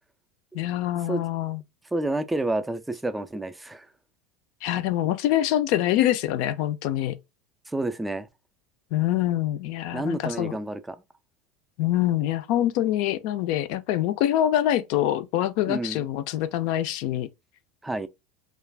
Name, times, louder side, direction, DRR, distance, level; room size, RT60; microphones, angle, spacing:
voice 1, 0.5-1.6 4.6-7.2 8.9-10.5 11.8-17.3, left 12 dB, 60° left, 0.4 m, -25 dB
voice 2, 1.9-3.9 7.7-8.3 9.9-11.0 15.7-16.0 17.8-18.1, right 2 dB, 5° right, 0.3 m, -29 dB
2.4 x 2.2 x 3.3 m
supercardioid pair, 135°, 0 cm